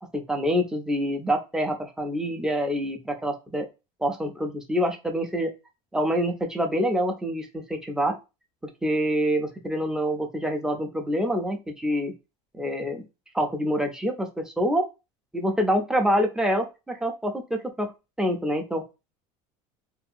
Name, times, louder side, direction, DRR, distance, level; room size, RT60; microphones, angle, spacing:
voice 1, 0.1-3.7 4.0-5.5 5.9-8.2 8.8-12.1 12.5-13.0 13.3-14.8 15.3-17.9 18.2-18.8, equal, 5° right, 3 dB, 0.4 m, -26 dB
2.7 x 2.3 x 2.5 m, 0.27 s
cardioid pair, 145°, 14 cm